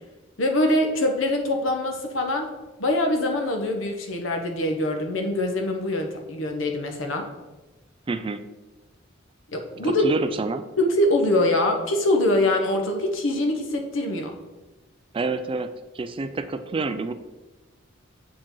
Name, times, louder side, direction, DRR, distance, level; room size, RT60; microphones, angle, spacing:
voice 1, 0.4-2.5 2.8-7.3 9.5-10.1 10.8-14.3, left 1 dB, 75° left, 4 dB, 1.0 m, -23 dB
voice 2, 8.1-8.4 9.8-10.6 15.1-17.1, right 3 dB, 25° right, 10 dB, 0.3 m, -28 dB
7.3 x 4.9 x 3.8 m, 1.1 s
head